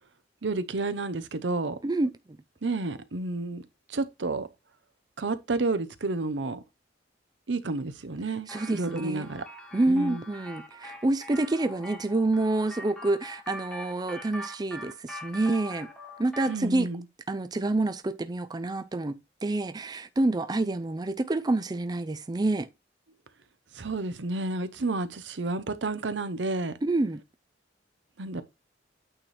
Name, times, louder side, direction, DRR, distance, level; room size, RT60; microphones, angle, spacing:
voice 1, 0.4-1.8 2.6-3.6 3.9-4.5 5.2-6.6 7.5-9.5 9.9-10.2 16.5-17.0 23.7-26.7 28.2-28.4, right 3 dB, 75° right, 0.8 m, -30 dB
voice 2, 1.8-2.4 8.5-9.3 9.7-15.9 16.2-16.9 17.3-22.7 26.8-27.2, right 2 dB, 20° right, 0.4 m, -28 dB
sound 1, 8.5-16.6, equal, 5° left, 1.3 m, -43 dB
8.8 x 3.3 x 4.1 m
head